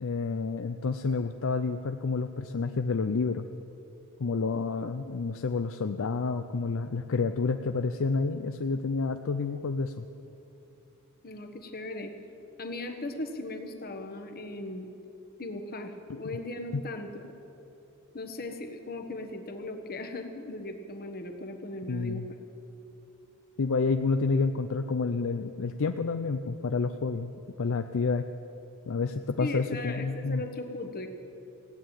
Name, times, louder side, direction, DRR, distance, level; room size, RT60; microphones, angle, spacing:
voice 1, 0.0-3.5 4.2-10.0 16.2-16.4 16.7-16.8 21.9-22.2 23.6-28.2 28.9-30.4, left 4 dB, 60° left, 8 dB, 0.5 m, -29 dB
voice 2, 11.2-12.1 12.6-14.9 15.4-17.3 18.1-22.2 29.4-31.1, left 2 dB, 45° left, 6 dB, 1.3 m, -38 dB
17.5 x 9.1 x 8.9 m, 2.9 s
head